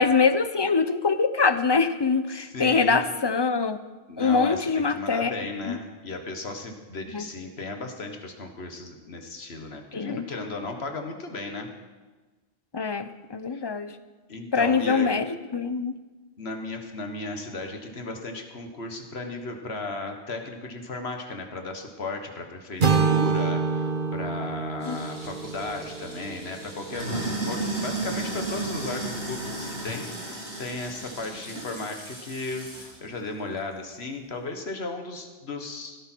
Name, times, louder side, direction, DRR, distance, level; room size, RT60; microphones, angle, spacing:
voice 1, 0.0-3.8 4.2-5.8 7.1-7.2 9.9-10.2 12.7-13.9 14.5-15.3 15.5-15.9 24.9-25.0, left 5 dB, 30° left, 11 dB, 0.5 m, -24 dB
voice 2, 2.3-3.0 4.1-11.7 13.5-13.6 14.3-15.1 16.4-36.0, left 3 dB, 80° left, 4 dB, 1.7 m, -35 dB
sound 1, 22.8-26.8, right 5 dB, 50° right, 1.2 m, -26 dB
Sink (filling or washing), 24.8-33.0, right 2 dB, 85° right, 4.1 m, -34 dB
16.0 x 13.0 x 4.5 m, 1.3 s
omnidirectional pair, 1.1 m